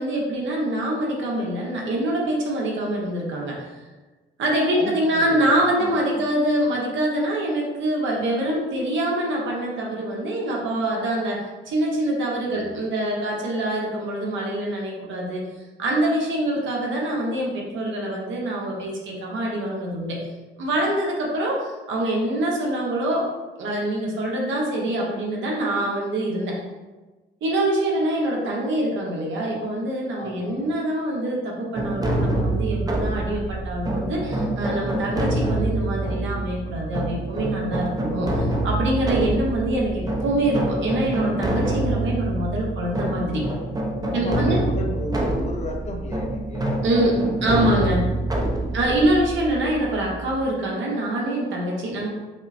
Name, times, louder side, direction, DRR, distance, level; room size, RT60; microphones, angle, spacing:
voice 1, 0.0-3.7 4.4-15.4 15.8-20.2 20.6-23.3 23.6-26.6 27.4-43.4 44.1-44.6 46.8-48.0 48.7-52.1, right 1 dB, 70° right, -2 dB, 1.0 m, -25 dB
voice 2, 4.8-6.3 30.2-30.6 44.1-47.2 47.4-47.9 48.4-49.0, left 2 dB, 35° left, 1 dB, 0.6 m, -34 dB
sound 1, 31.7-50.5, right 2 dB, 20° right, 0.6 m, -26 dB
5.3 x 2.0 x 2.6 m, 1.2 s
cardioid pair, 90°, 20 cm